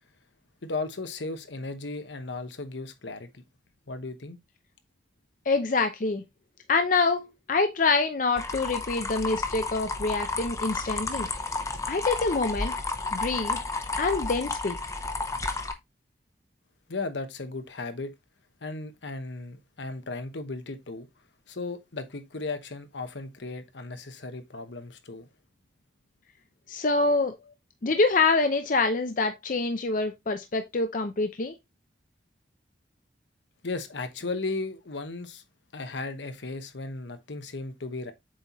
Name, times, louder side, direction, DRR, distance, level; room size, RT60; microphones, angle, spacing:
voice 1, 0.6-3.4 3.9-4.4 16.9-18.1 18.6-21.1 21.5-25.3 27.4-27.5 33.6-35.4 35.7-38.1, left 3 dB, 75° left, 1.0 m, -36 dB
voice 2, 5.5-6.2 6.7-11.3 11.9-12.7 13.1-13.6 14.0-14.8 26.7-27.3 27.8-31.5, left 3 dB, 45° left, 0.6 m, -26 dB
sound 1, 8.4-15.7, left 3 dB, 15° left, 0.8 m, -32 dB
7.6 x 4.2 x 3.0 m
head